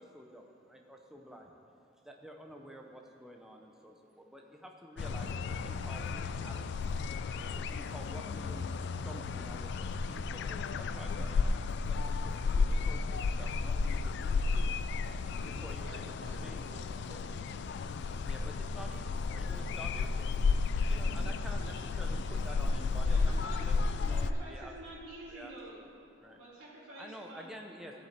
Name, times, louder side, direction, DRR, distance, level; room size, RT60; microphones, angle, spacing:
voice 1, 0.0-1.5 2.0-6.9 7.1-14.4 15.4-16.1 16.4-17.0 18.3-24.7 25.3-25.5 26.2-26.4 27.0-28.1, equal, ahead, 1 dB, 0.8 m, -50 dB
sound 1, 5.0-24.3, left 4 dB, 55° left, 0.3 m, -33 dB
voice 2, 15.3-17.7, right 1 dB, 65° right, 2 dB, 1.2 m, -53 dB
voice 3, 23.0-25.8 26.4-27.6 28.0-28.1, right 1 dB, 85° right, -7 dB, 2.4 m, -49 dB
13.5 x 8.2 x 4.4 m, 2.5 s
head